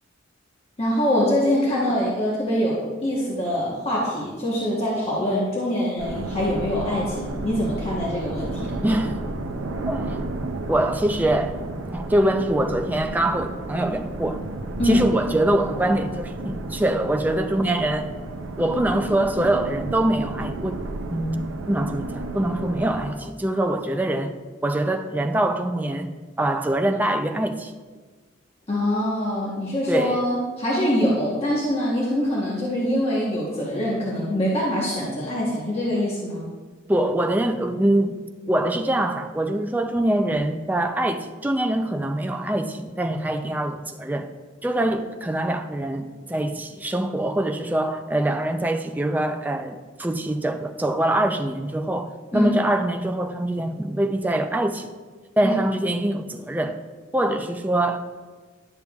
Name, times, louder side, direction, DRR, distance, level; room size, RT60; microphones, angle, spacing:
voice 1, 0.8-8.7 14.8-15.0 28.7-36.5 52.3-52.5 55.4-55.5, left 1 dB, 30° left, 1.0 m, -24 dB
sound 1, 6.0-23.1, right 2 dB, 90° right, 0.6 m, -32 dB
voice 2, 8.8-9.2 9.9-10.2 10.7-11.6 11.9-14.4 14.8-18.1 18.6-21.4 21.7-24.3 24.6-27.7 29.9-30.2 36.9-38.2 38.5-44.3 44.6-54.9 55.4-56.8 57.1-58.0, right 1 dB, 10° right, 0.4 m, -24 dB
11.0 x 6.7 x 2.3 m
head